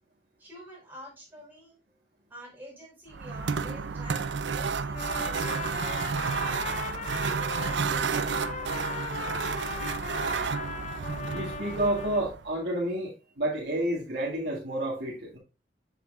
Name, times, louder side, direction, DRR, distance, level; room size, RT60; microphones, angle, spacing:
voice 1, 0.4-1.8 2.3-7.0 7.6-8.6, equal, 10° right, -5 dB, 4.8 m, -47 dB
sound 1, 3.1-12.5, right 5 dB, 90° right, 0.5 m, -31 dB
Trumpet, 4.9-7.8 8.1-12.3, left 6 dB, 40° left, 0.5 m, -38 dB
voice 2, 11.3-15.4, right 1 dB, 65° right, -5 dB, 2.0 m, -30 dB
7.8 x 7.6 x 2.4 m, 0.30 s
head